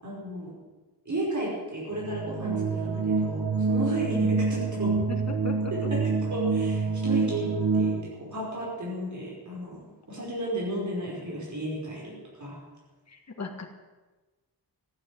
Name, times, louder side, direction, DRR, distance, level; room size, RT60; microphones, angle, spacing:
voice 1, 0.0-0.6 1.1-5.0 5.7-12.6, right 1 dB, 45° right, -5 dB, 5.3 m, -34 dB
sound 1, 1.9-8.0, right 4 dB, 70° right, 1.6 m, -27 dB
voice 2, 5.1-5.9 13.1-13.7, left 3 dB, 40° left, 1 dB, 2.2 m, -37 dB
15.5 x 9.1 x 9.0 m, 1.2 s
wide cardioid pair, 155°, 40 cm